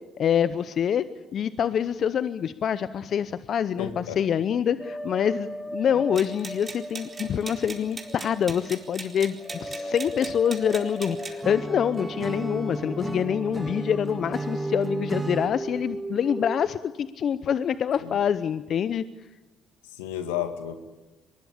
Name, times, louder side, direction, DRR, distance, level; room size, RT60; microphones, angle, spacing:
voice 1, 0.2-1.0 1.3-19.0, left 8 dB, 55° left, 14 dB, 0.8 m, -26 dB
voice 2, 3.8-4.2 5.9-6.2 18.0-18.2 19.9-20.8, left 10 dB, 90° left, 8 dB, 2.1 m, -32 dB
sound 1, 4.8-16.6, right 1 dB, 5° left, 2.7 m, -37 dB
sound 2, 6.2-11.4, right 4 dB, 35° right, 4.4 m, -40 dB
Acoustic guitar / Strum, 11.4-15.5, right 2 dB, 15° right, 2.8 m, -34 dB
23.5 x 21.0 x 8.6 m, 1.1 s
hypercardioid pair, 60°, 0 cm